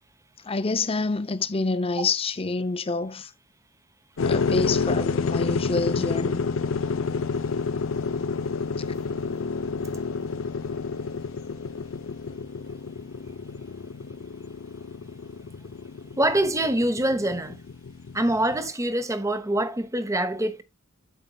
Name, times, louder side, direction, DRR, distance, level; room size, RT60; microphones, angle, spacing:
voice 1, 0.4-3.3 4.3-6.4, left 3 dB, 30° left, 0.6 m, -27 dB
sound 1, 4.2-18.7, left 4 dB, 70° left, 0.5 m, -29 dB
voice 2, 16.2-17.6 18.1-20.6, right 1 dB, 15° right, 1.0 m, -25 dB
9.0 x 6.8 x 2.3 m
head